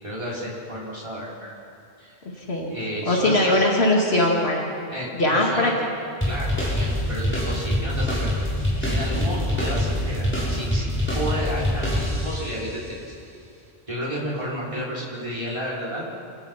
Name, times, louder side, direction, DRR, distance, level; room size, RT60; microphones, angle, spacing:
voice 1, 0.0-1.6 2.0-2.2 2.7-3.6 4.9-5.7 6.2-8.3 8.8-13.0 13.9-16.0, equal, 30° right, -6 dB, 5.3 m, -32 dB
voice 2, 2.4-2.7 3.1-4.6 5.2-5.7, left 1 dB, 75° left, -1 dB, 2.4 m, -20 dB
sound 1, 6.2-12.6, left 1 dB, 10° left, 6.4 m, -24 dB
27.0 x 16.5 x 5.7 m, 2.5 s
omnidirectional pair, 1.1 m